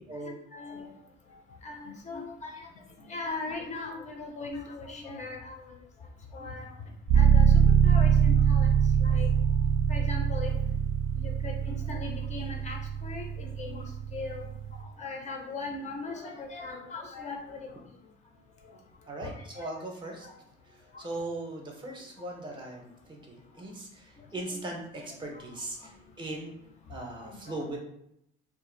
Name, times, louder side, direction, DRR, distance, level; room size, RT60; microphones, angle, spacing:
voice 1, 0.5-0.9 1.6-2.7 3.1-5.6 6.3-6.7 7.1-7.5 7.8-8.7 9.0-9.3 9.9-10.8 11.2-13.8 14.1-14.5 15.0-17.6 19.2-19.7 20.2-20.3 24.5-24.6 25.0-25.3 27.2-27.3, left 3 dB, 35° left, 1 dB, 0.4 m, -39 dB
sound 1, 7.1-14.8, right 7 dB, 90° right, 0.5 m, -24 dB
voice 2, 19.1-20.3 21.0-26.5 26.9-27.8, right 2 dB, 25° right, 0 dB, 0.5 m, -39 dB
2.5 x 2.3 x 3.7 m, 0.76 s
cardioid pair, 165°, 21 cm